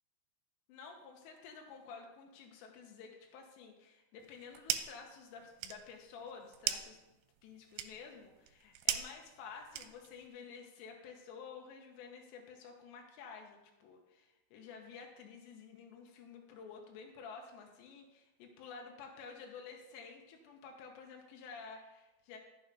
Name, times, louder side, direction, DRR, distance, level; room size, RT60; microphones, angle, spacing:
voice 1, 0.7-7.0 7.4-22.4, left 5 dB, 90° left, 2 dB, 3.3 m, -51 dB
sound 1, 4.2-5.1 5.4-10.3, right 11 dB, 85° right, 2.6 m, -39 dB
11.0 x 6.9 x 5.3 m, 1.0 s
omnidirectional pair, 4.9 m